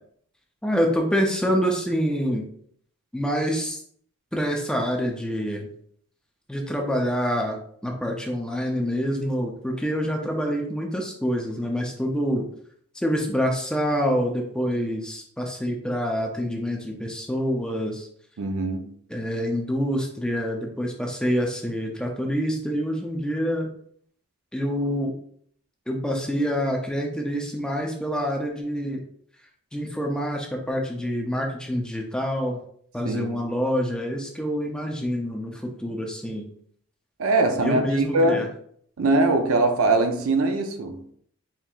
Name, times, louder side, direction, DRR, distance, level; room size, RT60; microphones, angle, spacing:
voice 1, 0.6-2.5 3.1-3.8 4.3-5.7 6.5-12.4 12.9-18.1 19.1-23.7 24.5-25.1 25.9-29.0 29.7-32.6 32.9-36.4 37.6-38.5, equal, 5° left, 0.5 m, -26 dB
voice 2, 18.4-18.9 33.0-33.3 37.2-38.5 39.0-41.1, right 2 dB, 70° right, 0.5 m, -22 dB
4.4 x 3.3 x 2.4 m
head